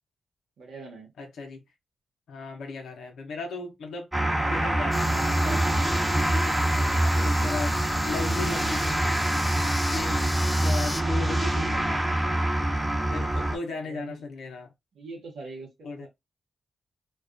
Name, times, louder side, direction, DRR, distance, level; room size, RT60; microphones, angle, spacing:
voice 1, 0.6-1.1 13.6-14.2 14.9-16.1, right 3 dB, 80° right, 0.9 m, -43 dB
voice 2, 1.2-1.6 2.3-4.1 4.5-9.3 9.9-12.1 13.1-14.7 15.8-16.1, left 3 dB, 80° left, 0.6 m, -36 dB
sound 1, 4.1-13.6, right 1 dB, 25° right, 0.8 m, -25 dB
sound 2, 4.9-11.0, left 2 dB, 25° left, 0.4 m, -36 dB
2.3 x 2.2 x 2.4 m
supercardioid pair, 40°, 0 cm